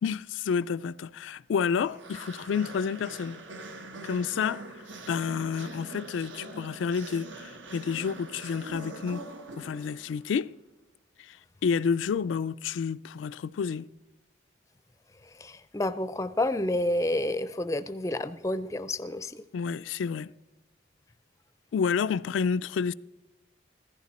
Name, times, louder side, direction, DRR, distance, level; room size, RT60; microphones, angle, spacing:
voice 1, 0.0-3.4 4.0-4.7 5.1-9.3 9.6-10.5 11.2-11.4 11.6-13.9 19.5-20.3 21.7-22.9, left 6 dB, 85° left, 0.3 m, -29 dB
sound 1, 1.8-10.3, right 2 dB, 85° right, 1.3 m, -43 dB
voice 2, 15.4-19.4, left 1 dB, 15° left, 0.4 m, -29 dB
15.0 x 14.5 x 4.2 m
head